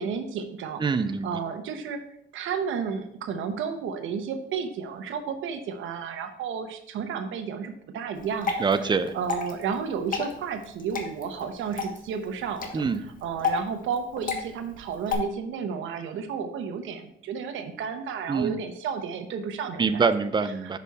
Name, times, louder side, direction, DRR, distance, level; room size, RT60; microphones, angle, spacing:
voice 1, 0.0-0.8 1.2-2.0 2.3-8.5 9.1-12.8 13.2-20.0 20.6-20.8, right 6 dB, 80° right, 7 dB, 1.0 m, -32 dB
voice 2, 0.8-1.3 8.6-9.1 12.7-13.0 18.3-18.6 19.8-20.8, right 5 dB, 25° right, 11 dB, 0.5 m, -24 dB
Water / Drip, 8.1-15.1, left 5 dB, 45° left, 1.4 m, -33 dB
6.5 x 5.4 x 4.1 m, 0.72 s
cardioid pair, 90°, 20 cm